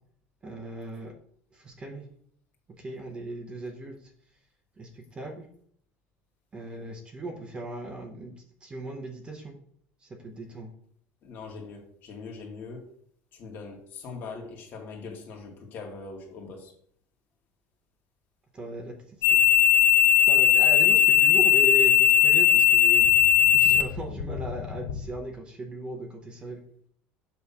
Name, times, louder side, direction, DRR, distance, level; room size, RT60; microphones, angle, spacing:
voice 1, 0.4-1.1 1.6-2.0 2.8-4.0 4.8-5.4 6.5-8.3 8.6-9.6 10.2-10.7 18.5-18.9 19.2-19.3 20.3-23.1 23.5-26.6, right 2 dB, 20° right, 3 dB, 1.0 m, -37 dB
voice 2, 11.2-12.9 13.3-16.7, left 4 dB, 45° left, 1 dB, 1.9 m, -41 dB
sound 1, 19.2-25.0, left 10 dB, 85° left, 0.9 m, -19 dB
7.0 x 3.3 x 5.6 m, 0.62 s
cardioid pair, 150°, 5 cm